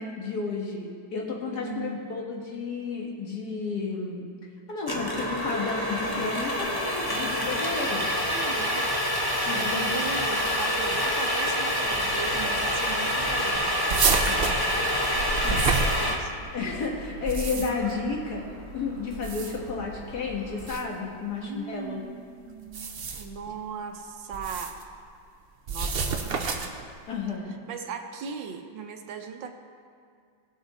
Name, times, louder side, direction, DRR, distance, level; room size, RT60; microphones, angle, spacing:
voice 1, 0.0-4.3 4.7-8.1 9.5-10.0 14.2-14.5 15.4-15.7 16.5-18.4 18.7-22.1 27.1-27.6, left 4 dB, 55° left, -1 dB, 2.0 m, -32 dB
voice 2, 1.5-2.2 8.3-8.8 9.5-13.7 15.8-16.5 21.3-24.8 25.7-26.7 27.5-29.5, right 6 dB, 70° right, 5 dB, 1.5 m, -38 dB
sound 1, 4.9-16.1, equal, 20° left, 0.7 m, -27 dB
Gull seagull, 11.8-20.7, right 1 dB, 85° left, 3.8 m, -43 dB
sound 2, 13.9-16.5 17.1-17.9 19.1-19.7 20.6-20.8 22.6-23.4 24.3-24.8 25.7-26.8, right 4 dB, 90° right, 0.5 m, -28 dB
18.5 x 6.2 x 4.2 m, 2.2 s
omnidirectional pair, 2.2 m